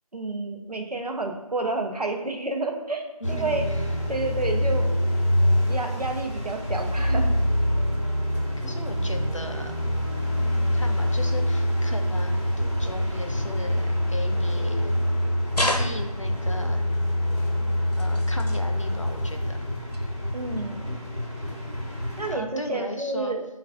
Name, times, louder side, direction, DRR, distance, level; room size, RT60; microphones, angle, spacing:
voice 1, 0.1-3.6 4.1-4.9 5.7-7.3 20.3-21.0 22.2-23.4, right 3 dB, 85° right, 2 dB, 0.7 m, -30 dB
voice 2, 3.2-4.0 8.6-9.7 10.7-14.9 15.6-16.9 18.0-19.7 22.3-23.4, left 1 dB, 55° left, 4 dB, 0.4 m, -37 dB
sound 1, 3.2-22.3, left 1 dB, 50° right, 1.0 m, -25 dB
sound 2, 15.5-16.4 17.9-18.6 19.9-20.1 20.9-21.0, left 1 dB, 85° left, 0.7 m, -29 dB
3.3 x 2.4 x 3.5 m, 1.1 s
figure-of-eight pair, 180°, 20 cm